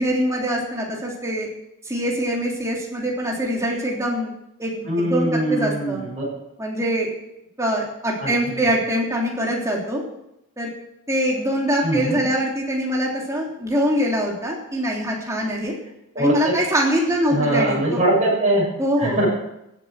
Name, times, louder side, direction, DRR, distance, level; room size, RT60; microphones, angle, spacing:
voice 1, 0.0-1.5 1.8-4.3 4.6-6.0 6.6-7.1 7.6-10.0 10.6-10.7 11.1-15.7 16.2-18.0 18.8-19.2, equal, 15° right, -2 dB, 3.4 m, -23 dB
voice 2, 4.8-6.2 8.2-8.6 11.8-12.2 16.1-16.6 17.3-18.7 19.0-19.3, right 1 dB, 30° right, -5 dB, 7.4 m, -22 dB
15.5 x 8.6 x 7.8 m, 0.83 s
head